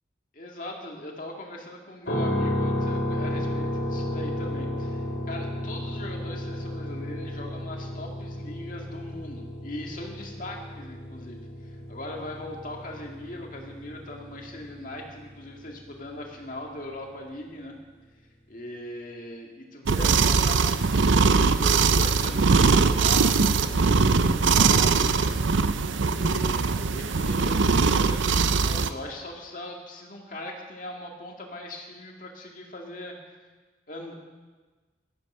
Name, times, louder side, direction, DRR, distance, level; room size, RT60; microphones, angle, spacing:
voice 1, 0.3-17.8 18.5-25.3 26.1-33.2 33.9-34.1, left 1 dB, 45° left, 0 dB, 2.1 m, -40 dB
sound 1, 2.1-16.1, left 1 dB, 90° left, 2.4 m, -33 dB
sound 2, 19.9-28.9, right 4 dB, 85° right, 0.6 m, -21 dB
13.5 x 12.0 x 5.6 m, 1.3 s
head